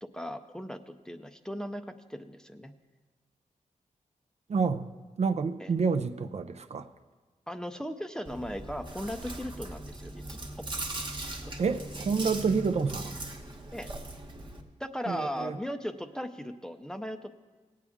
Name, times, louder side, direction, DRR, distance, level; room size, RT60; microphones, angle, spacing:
voice 1, 0.0-2.7 5.6-5.7 7.5-10.6 13.7-13.9 14.8-17.3, equal, 5° left, 0.5 m, -37 dB
voice 2, 4.5-4.9 5.2-6.9 11.6-13.2 15.1-15.5, right 5 dB, 55° right, 0.5 m, -28 dB
Chewing mastication, 8.2-14.6, right 1 dB, 35° right, 1.2 m, -39 dB
19.0 x 8.4 x 3.5 m
wide cardioid pair, 125°, 14 cm